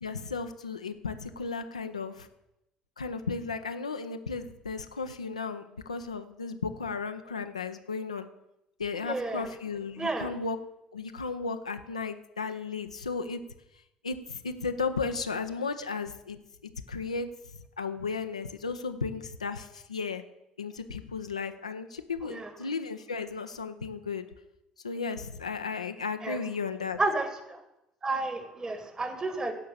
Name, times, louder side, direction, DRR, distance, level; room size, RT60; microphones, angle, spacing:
voice 1, 0.0-2.3 3.0-8.3 8.8-10.6 10.9-13.4 14.0-17.3 17.8-20.2 20.6-24.3 24.8-27.0, left 4 dB, 85° left, 7 dB, 0.6 m, -34 dB
voice 2, 9.0-9.5 10.0-10.3 22.2-22.5 26.2-26.4 27.0-27.6 28.0-29.5, right 2 dB, 25° right, 8 dB, 2.0 m, -31 dB
16.0 x 5.7 x 7.0 m, 0.89 s
figure-of-eight pair, 55°, 3 cm